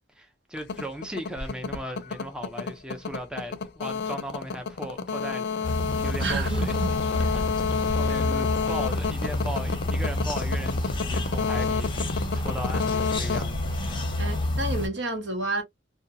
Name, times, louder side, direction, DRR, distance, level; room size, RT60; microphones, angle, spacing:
voice 1, 0.1-6.7 7.3-13.8, equal, 5° right, 0.4 m, -37 dB
sound 1, 0.6-14.4, left 5 dB, 60° left, 0.5 m, -30 dB
sound 2, 5.6-14.9, left 1 dB, 25° left, 0.7 m, -29 dB
voice 2, 6.2-6.9 14.2-15.6, right 2 dB, 75° right, 1.0 m, -30 dB
2.8 x 2.2 x 2.5 m
head